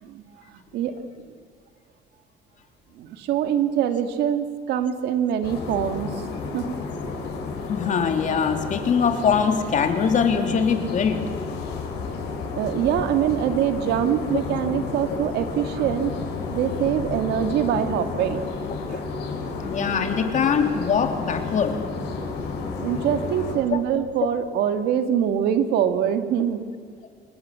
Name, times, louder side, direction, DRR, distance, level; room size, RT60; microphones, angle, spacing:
voice 1, 0.5-0.9 3.0-6.1 6.5-6.8 12.1-12.2 12.6-16.1 16.5-18.4 18.9-19.0 22.8-26.6, right 9 dB, 80° right, 8 dB, 2.2 m, -24 dB
sound 1, 5.4-23.6, left 4 dB, 85° left, 5.9 m, -32 dB
voice 2, 7.7-11.2 19.6-21.8, left 6 dB, 45° left, 5 dB, 3.3 m, -22 dB
27.5 x 20.5 x 8.5 m, 2.1 s
cardioid pair, 110°, 17 cm